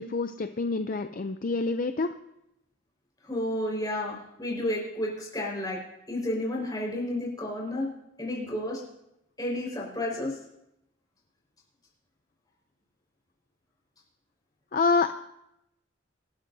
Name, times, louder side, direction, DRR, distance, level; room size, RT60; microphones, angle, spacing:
voice 1, 0.0-2.1 14.7-15.1, left 4 dB, 45° left, 8 dB, 0.5 m, -27 dB
voice 2, 3.2-5.8 6.1-7.9 8.2-8.8 9.4-10.4, left 1 dB, 20° left, -3 dB, 4.9 m, -31 dB
26.0 x 12.0 x 2.7 m, 0.84 s
head